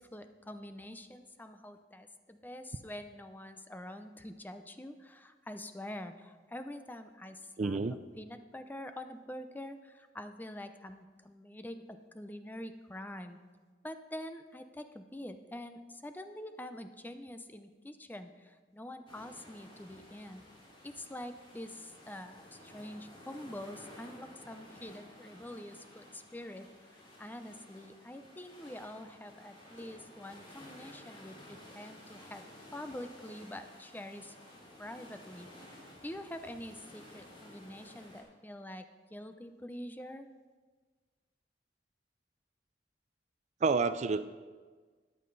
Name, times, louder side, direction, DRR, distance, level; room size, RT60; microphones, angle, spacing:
voice 1, 0.0-13.4 13.8-20.4 20.8-26.7 27.2-32.4 32.7-34.4 34.8-35.5 36.0-38.8 39.1-40.3, left 1 dB, 10° left, 8 dB, 0.6 m, -46 dB
voice 2, 7.6-8.0 43.6-44.2, right 4 dB, 40° right, 12 dB, 0.4 m, -29 dB
sound 1, 19.1-38.2, left 1 dB, 30° left, 3.1 m, -54 dB
13.5 x 9.6 x 4.0 m, 1.4 s
head